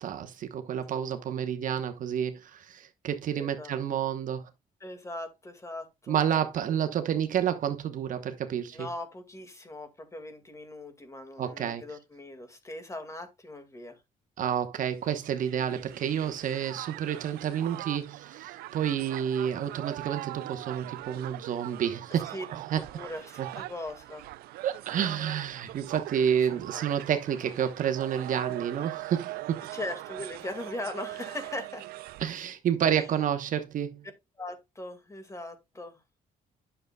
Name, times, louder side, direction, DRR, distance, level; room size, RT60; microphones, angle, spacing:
voice 1, 0.0-4.5 6.1-8.9 11.4-11.8 14.4-22.3 22.7-22.8 23.4-23.5 24.6-29.6 32.2-34.0, right 9 dB, 60° right, 1.0 m, -29 dB
voice 2, 3.4-3.8 4.8-6.2 8.7-14.0 22.1-22.5 22.7-24.3 26.5-26.9 29.7-31.9 33.0-33.1 34.4-36.0, left 1 dB, 20° left, 1.9 m, -40 dB
Crowd, 15.0-32.4, right 17 dB, 85° right, 0.4 m, -42 dB
10.0 x 6.7 x 2.3 m
cardioid pair, 105°, 15 cm